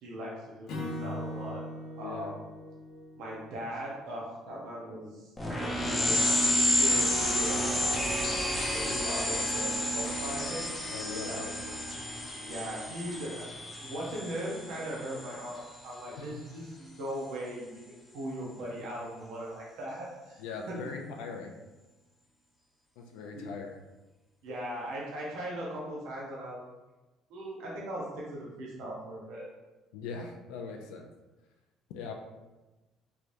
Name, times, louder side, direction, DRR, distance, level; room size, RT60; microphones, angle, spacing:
voice 1, 0.0-1.6 2.0-2.3 3.2-5.3 5.6-7.8 8.7-10.6 11.2-11.4 12.4-20.8 23.3-23.4 24.4-26.6 27.3-29.5, right 1 dB, 80° right, -5 dB, 0.8 m, -39 dB
Acoustic guitar / Strum, 0.7-4.0, left 1 dB, 65° left, 0.8 m, -40 dB
voice 2, 2.0-2.4 10.9-11.9 16.2-16.4 20.4-21.6 23.0-23.8 29.9-31.1 31.9-32.1, left 5 dB, 90° left, 2 dB, 0.4 m, -41 dB
sound 1, 5.4-15.5, left 1 dB, 15° left, 0.8 m, -30 dB
3.4 x 3.2 x 2.6 m, 1.1 s
supercardioid pair, 85°, 0 cm